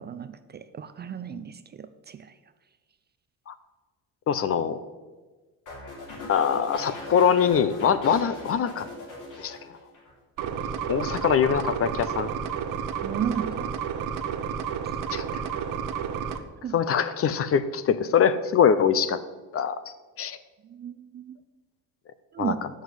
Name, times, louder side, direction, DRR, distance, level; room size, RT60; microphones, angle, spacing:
voice 1, 0.0-2.3 13.0-13.7 16.6-16.7 20.7-21.4 22.3-22.6, right 8 dB, 30° right, 12 dB, 0.4 m, -33 dB
voice 2, 4.3-4.8 6.3-8.9 9.4-9.6 10.9-12.3 15.1-15.2 16.7-19.2 19.5-19.8 20.2-20.4 22.4-22.5, left 7 dB, 40° left, 14 dB, 0.6 m, -23 dB
sound 1, 5.7-10.1 10.4-10.8, left 2 dB, 60° left, 3.3 m, -40 dB
sound 2, 10.4-16.4, right 7 dB, 65° right, 0.9 m, -31 dB
7.1 x 6.4 x 7.9 m, 1.3 s
cardioid pair, 120°, 35 cm